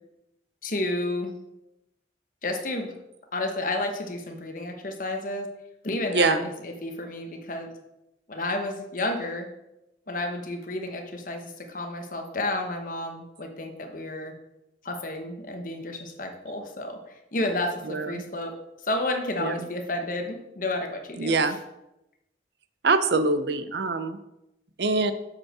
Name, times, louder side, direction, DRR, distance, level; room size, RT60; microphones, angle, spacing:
voice 1, 0.6-1.3 2.4-2.9 3.3-5.5 5.8-7.7 8.3-9.5 10.1-14.3 14.8-18.6 18.8-21.6, left 2 dB, 45° left, 4 dB, 1.2 m, -31 dB
voice 2, 17.9-18.3 19.4-19.5 21.2-21.6 22.8-24.2 24.8-25.1, right 3 dB, 65° right, 11 dB, 0.6 m, -24 dB
7.4 x 5.1 x 6.0 m, 0.89 s
head